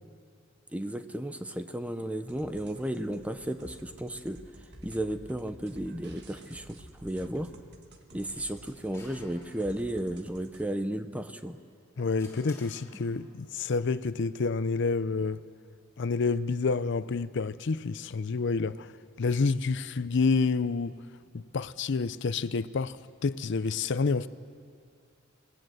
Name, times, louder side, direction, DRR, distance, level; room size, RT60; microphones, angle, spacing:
voice 1, 0.7-4.4 4.8-7.5 8.1-11.6, right 1 dB, 5° right, 0.8 m, -34 dB
sound 1, 2.3-10.7, right 1 dB, 55° right, 1.8 m, -51 dB
sound 2, 8.4-10.1 11.4-13.5, left 2 dB, 15° left, 3.9 m, -54 dB
voice 2, 12.0-15.4 16.0-21.0 21.3-24.3, left 4 dB, 60° left, 0.5 m, -29 dB
27.0 x 19.5 x 7.8 m
head